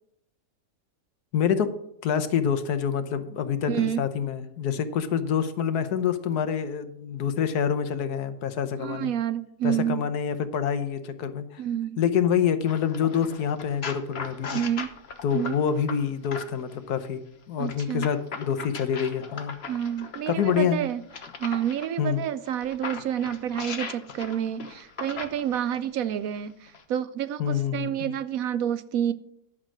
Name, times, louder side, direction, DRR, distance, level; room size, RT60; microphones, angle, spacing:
voice 1, 1.3-1.7 2.0-9.1 9.6-11.6 12.0-14.6 15.2-17.2 17.5-19.5 20.3-20.8 22.0-22.2 27.4-28.1, left 8 dB, 80° left, 10 dB, 1.4 m, -26 dB
voice 2, 3.7-4.1 8.8-10.0 11.6-12.0 14.5-14.9 15.3-15.6 17.6-18.1 19.7-21.0 21.4-29.1, right 10 dB, 70° right, 14 dB, 1.0 m, -29 dB
sound 1, 12.7-16.8 17.7-21.9 22.4-25.9 26.7-26.8, left 5 dB, 45° left, 1.2 m, -38 dB
11.5 x 6.1 x 6.2 m, 0.75 s
omnidirectional pair, 1.6 m